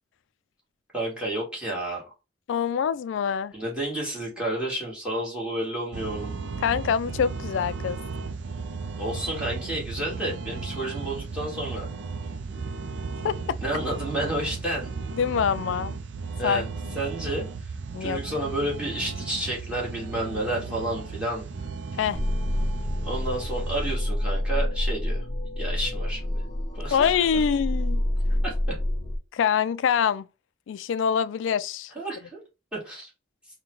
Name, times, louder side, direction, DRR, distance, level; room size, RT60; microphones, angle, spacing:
voice 1, 0.9-2.0 3.5-6.3 9.0-11.9 13.6-14.9 16.4-16.7 16.9-17.5 18.0-21.4 23.0-25.2 25.6-26.4 26.7-27.1 28.4-28.8 31.9-32.4 32.7-33.1, right 1 dB, 5° right, 1.7 m, -30 dB
voice 2, 2.5-3.5 6.6-8.0 13.2-13.6 15.2-16.0 16.4-16.7 17.9-18.2 21.9-22.2 26.9-28.0 29.3-30.3 30.7-31.9, left 7 dB, 85° left, 0.3 m, -25 dB
sound 1, 5.9-24.0, right 4 dB, 70° right, 0.5 m, -35 dB
sound 2, 22.1-29.2, left 1 dB, 25° left, 0.7 m, -28 dB
3.8 x 2.2 x 4.5 m
head